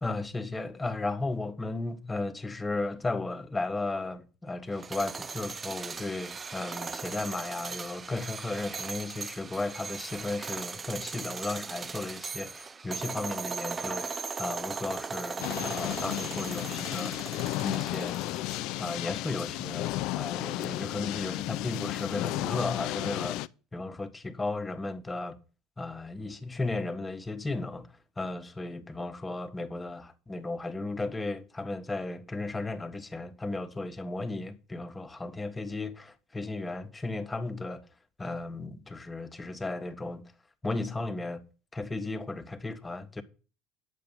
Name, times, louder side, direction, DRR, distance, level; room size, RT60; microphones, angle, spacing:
voice 1, 0.0-14.1 14.4-17.3 17.6-18.2 18.8-23.4 23.7-25.4 25.8-37.8 38.2-40.2 40.6-41.4 41.7-43.2, left 2 dB, 15° left, 1.6 m, -35 dB
sound 1, 4.7-18.9, right 5 dB, 30° right, 0.6 m, -38 dB
sound 2, 15.4-23.5, left 17 dB, 65° left, 0.5 m, -33 dB
10.5 x 7.6 x 5.6 m
hypercardioid pair, 75°, 0 cm